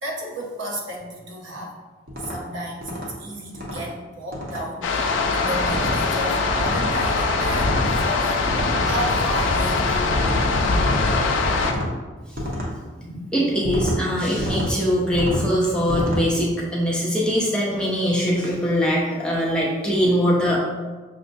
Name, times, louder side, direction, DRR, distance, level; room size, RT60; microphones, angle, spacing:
voice 1, 0.0-1.7 2.2-10.1, equal, 80° right, -1 dB, 0.8 m, -33 dB
sound 1, 2.1-2.4 2.8-3.1 3.5-3.8 4.3-4.6 5.6-6.0 6.6-7.0 7.5-7.9 8.5-8.9 10.1-10.4 10.9-11.2 11.6-11.9 12.4-12.7 13.6-14.0 14.4-14.7 15.1-15.5 15.9-16.2, equal, 50° right, 0.8 m, -28 dB
sound 2, 4.8-11.7, left 3 dB, 85° left, 0.4 m, -22 dB
voice 2, 13.0-20.6, equal, 5° left, -5 dB, 0.6 m, -22 dB
6.2 x 2.1 x 2.5 m, 1.3 s
head